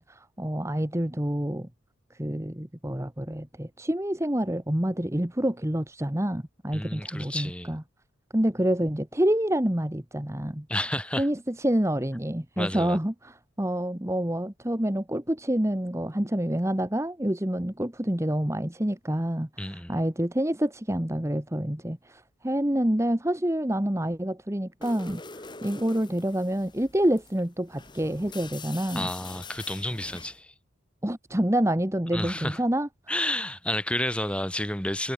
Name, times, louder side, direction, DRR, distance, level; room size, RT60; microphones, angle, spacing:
voice 1, 0.0-1.7 2.1-7.8 8.3-10.7 11.2-29.1 31.0-33.1, right 1 dB, 15° right, 1.2 m, -27 dB
voice 2, 6.7-7.7 10.7-11.3 12.6-13.0 19.6-20.0 28.9-30.5 32.1-32.6 33.1-35.1, left 1 dB, 5° left, 2.8 m, -31 dB
sound 1, 24.8-30.4, left 4 dB, 20° left, 1.7 m, -44 dB
head